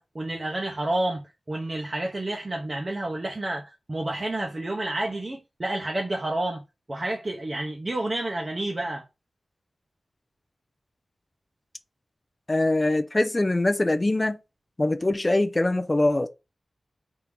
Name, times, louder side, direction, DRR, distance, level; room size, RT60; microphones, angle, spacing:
voice 1, 0.0-6.6 6.9-9.0, right 1 dB, 35° right, 0.7 m, -30 dB
voice 2, 12.5-14.4 14.8-16.3, left 2 dB, 25° left, 0.4 m, -23 dB
3.6 x 2.7 x 4.6 m
wide cardioid pair, 95°, 0 cm